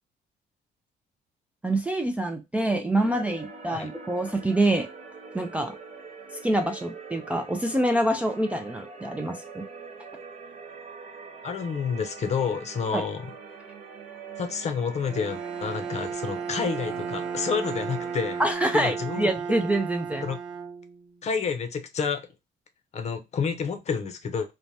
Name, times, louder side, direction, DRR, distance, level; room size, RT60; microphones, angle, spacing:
voice 1, 1.6-4.9 5.3-5.8 6.4-9.6 12.9-13.1 18.4-20.3, right 1 dB, 10° right, 0.3 m, -26 dB
sound 1, 3.0-18.6, right 5 dB, 50° right, 0.8 m, -43 dB
voice 2, 11.4-13.2 14.4-18.4 18.7-19.3 20.2-20.4 21.2-22.3 22.9-24.5, left 6 dB, 40° left, 0.6 m, -29 dB
Bowed string instrument, 15.0-21.2, right 6 dB, 25° right, 1.0 m, -34 dB
3.2 x 2.1 x 2.6 m
cardioid pair, 110°, 17 cm